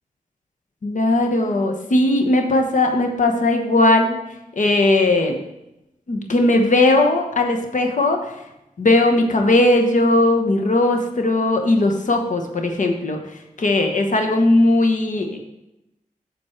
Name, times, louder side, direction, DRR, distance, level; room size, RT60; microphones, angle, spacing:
voice 1, 0.8-4.2 4.6-5.4 6.1-8.2 8.8-13.2 13.6-15.4, left 2 dB, 65° left, 4 dB, 1.1 m, -18 dB
7.9 x 7.2 x 4.5 m, 0.88 s
wide cardioid pair, 90°, 14 cm